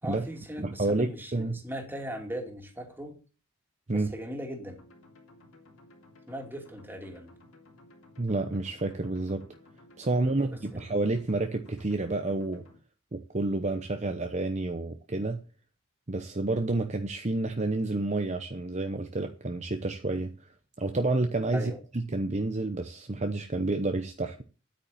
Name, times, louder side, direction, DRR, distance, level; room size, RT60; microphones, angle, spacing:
voice 1, 0.0-3.2 3.9-4.8 6.3-7.3 10.2-10.6 21.5-21.8, equal, 10° right, 2.8 m, -39 dB
voice 2, 0.6-1.6 3.9-4.1 8.2-9.4 10.0-12.7 13.1-15.4 16.1-20.5 20.8-24.4, right 2 dB, 35° right, 0.9 m, -29 dB
sound 1, 4.8-12.8, left 2 dB, 90° left, 3.2 m, -56 dB
9.7 x 8.9 x 7.3 m
head